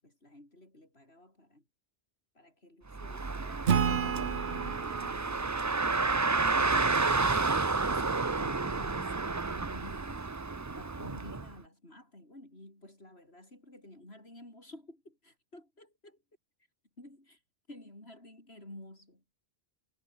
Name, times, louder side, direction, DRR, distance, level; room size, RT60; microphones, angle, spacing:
voice 1, 0.0-1.6 2.3-5.9 6.5-7.1 7.9-10.4 10.7-16.2 17.0-17.4 17.7-19.2, left 1 dB, 80° left, 8.2 m, -52 dB
Car, 2.9-11.5, right 3 dB, 20° right, 0.5 m, -30 dB
Acoustic guitar / Strum, 3.7-7.1, right 8 dB, 80° right, 1.2 m, -33 dB
omnidirectional pair, 1.0 m